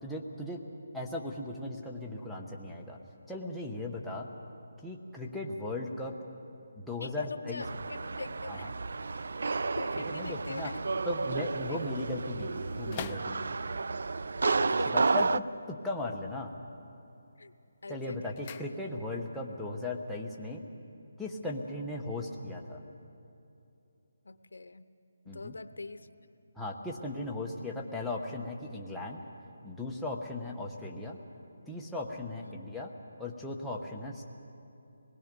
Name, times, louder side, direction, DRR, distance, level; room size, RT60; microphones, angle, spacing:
voice 1, 0.0-0.6 0.9-3.0 3.3-4.3 4.8-6.1 6.8-7.6 8.5-8.7 10.1-10.7 11.1-13.6 14.9-16.5 17.9-20.6 21.2-22.8 25.3-25.5 26.6-29.2 29.6-31.2 31.7-32.9 33.2-34.2, left 2 dB, ahead, -4 dB, 1.0 m, -37 dB
voice 2, 7.0-8.7 9.8-10.8 11.7-11.8 14.4-15.0 17.4-17.5 17.8-18.7 24.2-24.9 25.2-26.1 30.4-30.5 32.4-32.5, left 3 dB, 85° left, 12 dB, 0.8 m, -42 dB
sound 1, 7.6-15.4, right 4 dB, 65° right, 0.4 m, -32 dB
sound 2, 8.9-13.9 14.9-16.1 16.4-16.9 17.2-19.3 19.6-19.7, left 8 dB, 25° left, 0.6 m, -49 dB
25.0 x 21.0 x 5.3 m, 2.7 s
hypercardioid pair, 170°, 0 cm